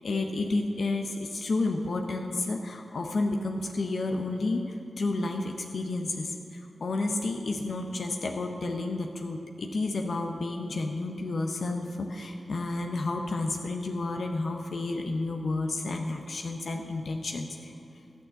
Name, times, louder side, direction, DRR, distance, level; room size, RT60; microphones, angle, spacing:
voice 1, 0.0-4.6 5.0-6.3 6.8-17.7, left 2 dB, 75° left, 3 dB, 0.7 m, -31 dB
10.5 x 6.5 x 7.6 m, 2.7 s
cardioid pair, 40°, 0 cm